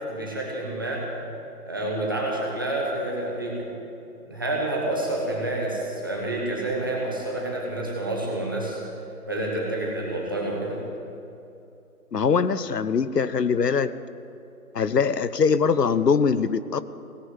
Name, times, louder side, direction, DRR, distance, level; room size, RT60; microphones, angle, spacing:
voice 1, 0.1-1.0 1.7-3.7 4.2-8.8 9.3-10.8, right 1 dB, 15° right, -3 dB, 1.2 m, -28 dB
voice 2, 12.1-13.9 14.7-16.8, left 6 dB, 85° left, 15 dB, 0.9 m, -22 dB
17.5 x 9.1 x 9.0 m, 2.8 s
figure-of-eight pair, 170°, 47 cm